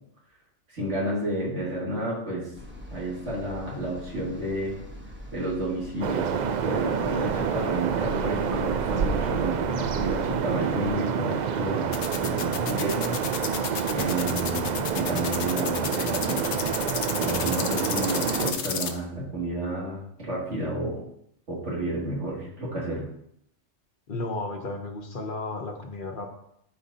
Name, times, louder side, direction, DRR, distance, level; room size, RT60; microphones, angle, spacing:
voice 1, 0.7-2.5 2.9-4.8 5.3-13.6 13.9-16.6 17.2-21.0 21.5-23.1, right 1 dB, 80° right, -5 dB, 2.7 m, -31 dB
sound 1, 2.5-9.2, left 1 dB, 10° right, 1.0 m, -43 dB
sound 2, 6.0-18.5, right 7 dB, 60° right, 0.4 m, -28 dB
sound 3, 11.9-18.9, left 7 dB, 75° left, 1.0 m, -31 dB
voice 2, 24.1-26.3, left 2 dB, 50° left, 3 dB, 1.0 m, -33 dB
12.0 x 4.7 x 2.8 m, 0.74 s
omnidirectional pair, 1.2 m